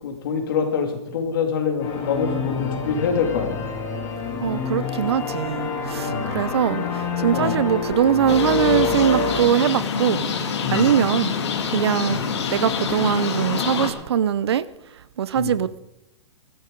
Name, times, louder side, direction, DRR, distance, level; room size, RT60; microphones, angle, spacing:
voice 1, 0.0-3.6 6.1-6.4 7.3-7.6 10.6-11.0 12.1-12.2 15.3-15.6, left 6 dB, 45° left, 2.7 m, -25 dB
sound 1, 1.8-9.4, left 5 dB, 20° left, 2.6 m, -27 dB
voice 2, 4.4-6.1 6.3-6.8 7.2-10.3 10.7-11.3 11.7-12.2 12.5-14.6 15.2-15.8, right 9 dB, 60° right, 0.6 m, -21 dB
sound 2, 8.3-13.9, left 6 dB, 60° left, 2.9 m, -26 dB
21.0 x 13.5 x 3.8 m
hypercardioid pair, 170°, 15 cm